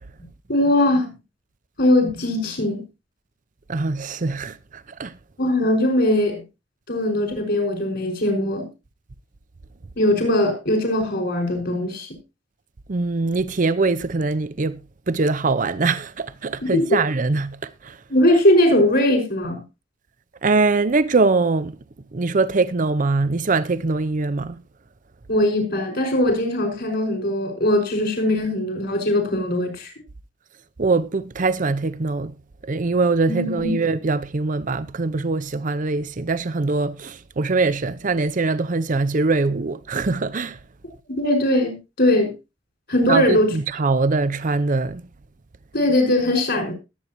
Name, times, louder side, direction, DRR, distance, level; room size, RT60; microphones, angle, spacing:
voice 1, 0.5-1.1 1.8-2.8 5.4-6.4 6.9-8.7 10.0-12.1 16.6-17.0 18.1-19.6 25.3-29.9 33.3-33.7 41.2-42.3 42.9-43.5 45.7-46.7, left 1 dB, 60° left, 5.5 m, -20 dB
voice 2, 3.7-5.1 12.9-14.8 15.1-18.0 20.4-21.8 22.1-24.6 30.8-32.3 32.6-40.6 43.1-45.0, right 3 dB, 40° right, 0.6 m, -22 dB
21.0 x 8.4 x 3.0 m
head